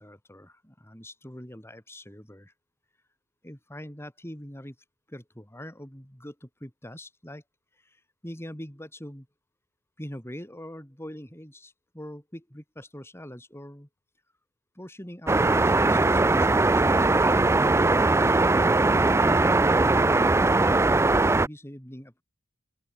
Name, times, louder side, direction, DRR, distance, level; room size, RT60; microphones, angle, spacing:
voice 1, 0.0-2.5 3.4-4.8 5.1-7.4 7.7-9.3 10.0-13.9 14.7-18.4 19.2-22.2, equal, 10° left, 5.0 m, -43 dB
sound 1, 15.3-21.5, right 2 dB, 10° right, 0.4 m, -20 dB
open air
head